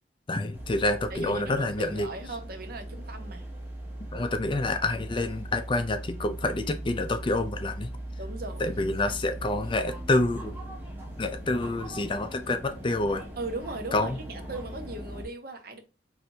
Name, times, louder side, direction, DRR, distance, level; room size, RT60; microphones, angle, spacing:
voice 1, 0.3-2.1 4.1-7.9 8.6-10.5 11.2-13.2 13.9-14.2, left 2 dB, 30° left, 0.4 m, -28 dB
sound 1, 0.5-15.2, right 1 dB, 10° right, 1.2 m, -39 dB
voice 2, 1.1-3.5 8.2-9.1 13.4-15.8, right 2 dB, 55° right, 0.9 m, -38 dB
4.5 x 3.3 x 2.7 m
head